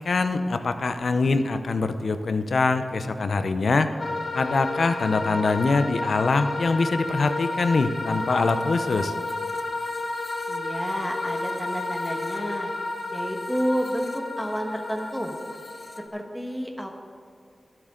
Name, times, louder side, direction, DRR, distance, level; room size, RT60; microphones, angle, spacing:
voice 1, 0.0-3.9 4.3-9.1, left 3 dB, 80° left, 9 dB, 0.7 m, -24 dB
sound 1, 4.0-16.1, left 2 dB, 50° left, 0.9 m, -31 dB
voice 2, 10.5-12.7 13.1-15.3 16.1-16.9, equal, ahead, 2 dB, 1.4 m, -30 dB
23.0 x 7.8 x 3.8 m, 2.3 s
wide cardioid pair, 110°, 0 cm